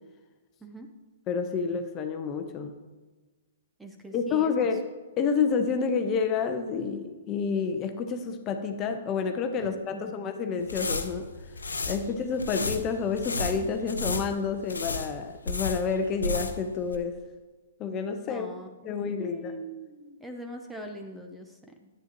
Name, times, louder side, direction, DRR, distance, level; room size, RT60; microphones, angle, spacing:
voice 1, 1.3-2.8 4.1-4.9 5.2-11.3 11.9-17.2 17.8-18.5 18.8-19.6, left 5 dB, 30° left, 6 dB, 0.9 m, -29 dB
voice 2, 3.8-4.5 9.6-10.0 18.3-21.9, right 1 dB, 5° right, 3 dB, 0.8 m, -42 dB
sound 1, 10.6-16.7 16.9-17.0, left 3 dB, 85° left, 0.8 m, -33 dB
10.5 x 9.0 x 2.9 m, 1.3 s
figure-of-eight pair, 120°, 0 cm